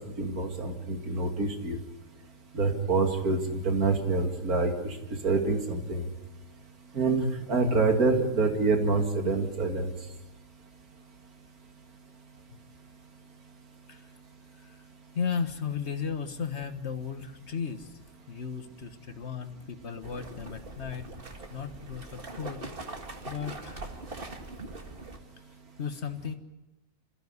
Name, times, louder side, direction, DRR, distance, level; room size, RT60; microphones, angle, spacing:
voice 1, 0.2-1.8 2.5-5.0 5.2-6.0 6.9-9.9, right 3 dB, 65° right, 4 dB, 2.8 m, -26 dB
voice 2, 15.2-17.9 18.3-21.1 21.5-22.7 23.3-23.8 25.8-26.3, left 6 dB, 45° left, 8 dB, 1.6 m, -35 dB
sound 1, 20.0-25.2, right 2 dB, 35° right, 2.0 m, -42 dB
26.5 x 15.0 x 9.7 m, 1.1 s
omnidirectional pair, 1.7 m